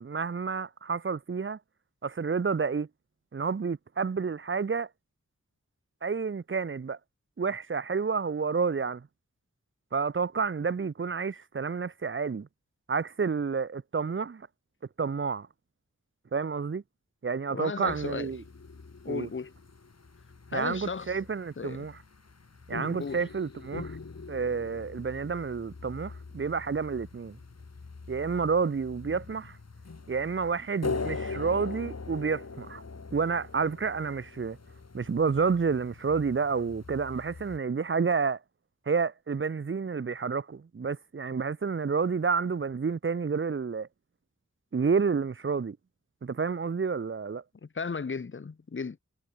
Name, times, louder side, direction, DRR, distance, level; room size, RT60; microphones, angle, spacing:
voice 1, 0.0-1.6 2.0-2.9 3.3-4.9 6.0-7.0 7.4-9.1 9.9-12.5 12.9-14.5 15.0-15.5 16.3-16.8 17.2-18.4 19.1-19.3 20.5-22.0 22.7-24.0 24.3-27.4 28.1-29.6 30.1-32.8 33.1-34.6 34.9-38.4 38.9-43.9 44.7-45.8 46.2-47.4, right 5 dB, 45° right, 0.8 m, -29 dB
voice 2, 17.5-18.3 19.0-19.5 20.5-21.1 21.6-21.9 23.0-23.2 47.6-49.0, left 5 dB, 45° left, 0.9 m, -35 dB
sound 1, 17.9-37.6, left 4 dB, 60° left, 4.5 m, -42 dB
wide cardioid pair, 80°, 29 cm